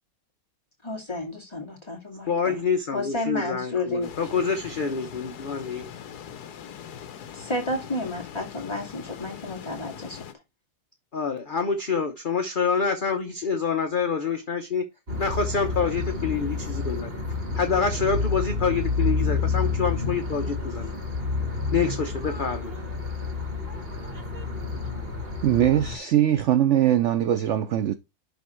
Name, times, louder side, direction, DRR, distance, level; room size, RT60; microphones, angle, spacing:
voice 1, 0.8-2.5 2.9-4.1 7.3-10.2, left 2 dB, 15° left, 2.3 m, -31 dB
voice 2, 2.3-5.8 11.1-14.8 15.2-17.1 17.5-20.9 21.7-22.7, left 5 dB, 40° left, 0.9 m, -27 dB
sound 1, 4.0-10.3, left 8 dB, 75° left, 1.4 m, -41 dB
sound 2, 15.1-26.0, left 4 dB, 35° right, 2.3 m, -29 dB
voice 3, 25.4-27.9, right 11 dB, 65° right, 0.7 m, -21 dB
10.5 x 3.7 x 4.4 m
omnidirectional pair, 1.8 m